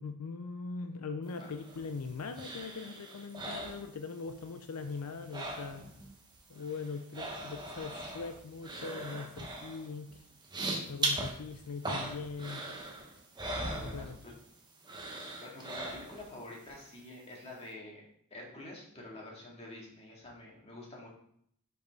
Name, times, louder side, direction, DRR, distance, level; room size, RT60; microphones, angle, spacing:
voice 1, 0.0-5.9 6.5-10.3 10.9-12.7 13.8-14.2, left 4 dB, 85° left, 8 dB, 0.5 m, -41 dB
sound 1, 1.4-4.4 4.7-6.1 6.3-14.5 14.8-16.4 16.8-16.9, right 2 dB, 20° right, 1.0 m, -40 dB
voice 2, 13.6-14.3 15.4-18.1 18.3-21.1, left 2 dB, 30° left, -3 dB, 2.0 m, -48 dB
5.5 x 4.5 x 5.3 m, 0.67 s
head